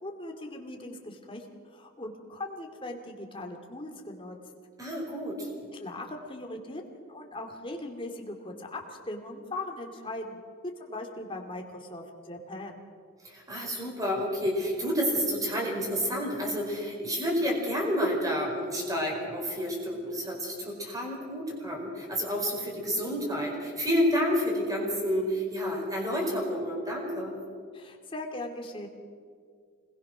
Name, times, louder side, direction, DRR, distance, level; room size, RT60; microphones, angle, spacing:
voice 1, 0.0-4.4 5.8-6.8 7.1-10.4 10.8-12.8 27.7-28.9, left 2 dB, 25° left, 2 dB, 2.4 m, -39 dB
voice 2, 4.8-5.5 13.2-27.3, equal, 15° right, 0 dB, 4.9 m, -29 dB
26.5 x 20.5 x 6.2 m, 2.1 s
head